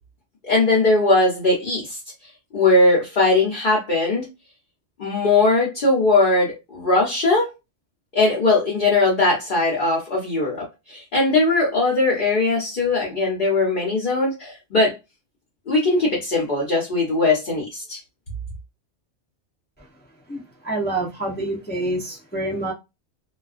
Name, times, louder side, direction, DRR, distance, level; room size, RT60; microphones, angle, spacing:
voice 1, 0.4-2.0 2.5-4.3 5.0-7.5 8.1-14.9 15.7-18.0, left 2 dB, 50° left, 0.9 m, -20 dB
voice 2, 20.3-22.7, right 2 dB, 15° left, 0.3 m, -27 dB
2.3 x 2.2 x 2.4 m
omnidirectional pair, 1.2 m